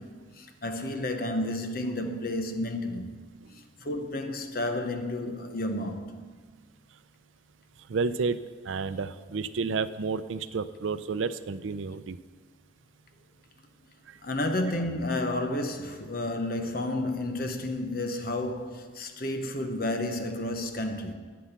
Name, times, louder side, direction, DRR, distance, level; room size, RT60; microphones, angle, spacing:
voice 1, 0.0-3.1 3.5-6.2 14.2-21.1, left 1 dB, 50° left, 1.0 m, -31 dB
voice 2, 7.9-8.4 8.7-12.2, right 4 dB, 85° right, 0.5 m, -30 dB
11.5 x 8.6 x 5.9 m
head